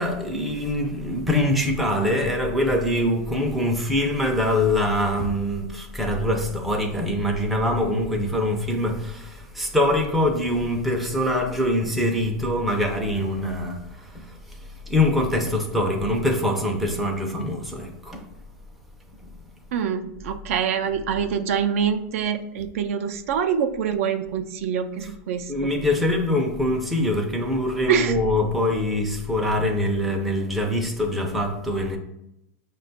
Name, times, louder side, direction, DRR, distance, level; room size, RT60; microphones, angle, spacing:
voice 1, 0.0-18.2 25.0-25.1 25.5-32.0, left 1 dB, ahead, 0.4 m, -24 dB
voice 2, 19.7-25.5 27.9-28.1, right 7 dB, 65° right, 0.4 m, -25 dB
5.7 x 2.2 x 4.0 m
supercardioid pair, 160°, 8 cm